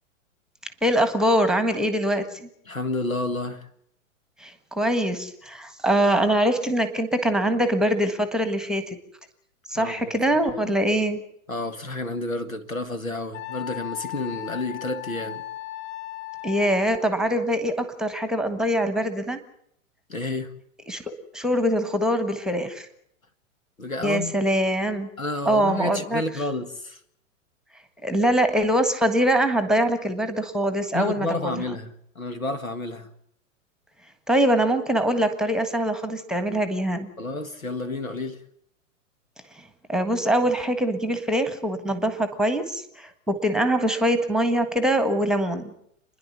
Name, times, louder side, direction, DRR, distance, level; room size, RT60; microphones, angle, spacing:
voice 1, 0.8-2.5 4.4-9.0 9.7-11.2 16.4-19.4 20.9-22.9 24.0-25.1 25.4-26.2 28.0-31.5 34.3-37.1 39.9-45.7, equal, ahead, 1.4 m, -23 dB
voice 2, 2.7-3.7 9.8-10.2 10.6-10.7 11.5-15.4 20.1-20.5 23.8-24.4 25.2-27.0 30.9-33.1 37.2-38.4, left 2 dB, 90° left, 1.9 m, -30 dB
Wind instrument woodwind instrument, 13.3-17.1, left 14 dB, 65° left, 1.2 m, -36 dB
28.5 x 11.0 x 9.4 m
figure-of-eight pair, 110°, 40 cm